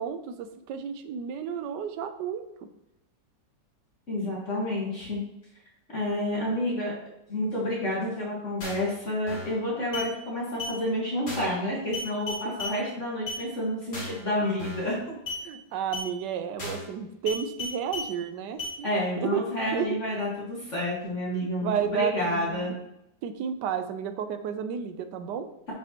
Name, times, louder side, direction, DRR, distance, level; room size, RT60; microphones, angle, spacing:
voice 1, 0.0-2.4 12.4-12.6 15.4-18.9 19.2-19.4 19.7-20.0 21.6-22.7 23.2-25.5, right 7 dB, 80° right, 8 dB, 1.3 m, -32 dB
voice 2, 4.1-5.2 5.9-6.9 7.3-15.0 18.8-22.7, left 1 dB, 45° left, -6 dB, 2.0 m, -29 dB
sound 1, 8.6-8.9 9.3-9.6 9.9-10.1 10.6-10.8 11.3-11.6 11.9-12.8 13.3-13.4 13.9-14.2 14.6-14.9 15.3-15.4 15.9-16.1 16.6-16.9 17.3-18.1 18.6-18.8, left 2 dB, 65° left, 2.8 m, -35 dB
9.6 x 5.4 x 3.0 m, 0.83 s
omnidirectional pair, 1.9 m